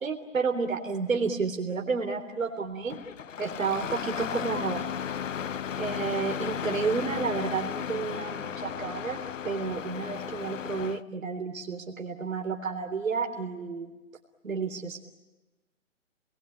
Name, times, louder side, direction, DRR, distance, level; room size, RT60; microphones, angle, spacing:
voice 1, 0.0-3.0 3.4-4.9 5.8-9.2 9.4-13.9 14.4-15.0, right 5 dB, 80° right, 4 dB, 3.6 m, -31 dB
Engine starting, 2.9-11.0, left 8 dB, 70° left, 0.9 m, -35 dB
30.0 x 21.5 x 8.6 m, 1.1 s
hypercardioid pair, 160°, 40 cm